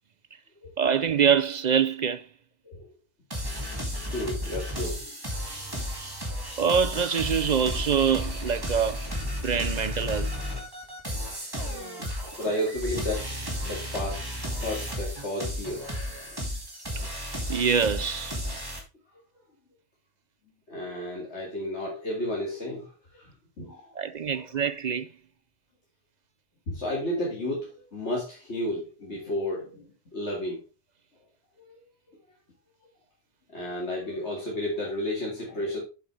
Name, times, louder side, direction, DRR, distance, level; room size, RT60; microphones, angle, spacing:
voice 1, 0.8-2.2 6.6-9.0 9.4-10.3 17.5-18.3 24.0-25.1, right 7 dB, 50° right, 0.5 m, -25 dB
sound 1, 3.3-18.8, equal, 20° right, 2.4 m, -33 dB
voice 2, 4.1-5.1 12.4-13.3 13.6-15.8 20.7-23.3 23.6-24.6 26.7-29.8 30.1-30.6 31.6-31.9 33.5-35.8, left 1 dB, 70° left, 2.4 m, -32 dB
8.1 x 7.5 x 3.3 m
omnidirectional pair, 1.2 m